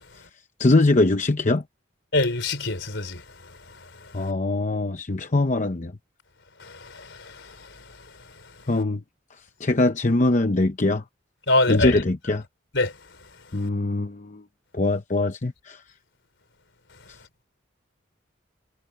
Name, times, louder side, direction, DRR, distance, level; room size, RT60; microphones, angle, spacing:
voice 1, 0.6-1.6 4.1-5.9 8.7-9.0 9.6-11.0 11.7-12.4 13.5-14.4 14.7-15.8, left 2 dB, 40° left, 0.8 m, -22 dB
voice 2, 2.1-3.2 6.6-7.6 11.5-12.0 12.7-12.9, left 2 dB, 65° left, 4.5 m, -24 dB
head